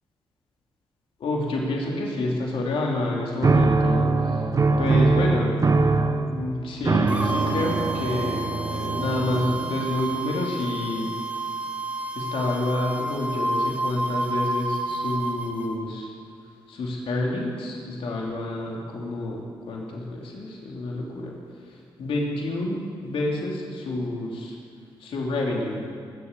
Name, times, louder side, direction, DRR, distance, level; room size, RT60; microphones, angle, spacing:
voice 1, 1.2-4.4 4.8-5.6 6.2-11.4 12.1-16.1 16.7-21.3 21.7-24.6 25.0-25.8, left 2 dB, 75° left, -2 dB, 3.0 m, -28 dB
sound 1, 3.4-9.9, right 3 dB, 35° right, 1.2 m, -22 dB
sound 2, 7.1-15.7, right 2 dB, 15° right, 2.1 m, -30 dB
20.5 x 8.2 x 7.3 m, 2.3 s
cardioid pair, 70°, 9 cm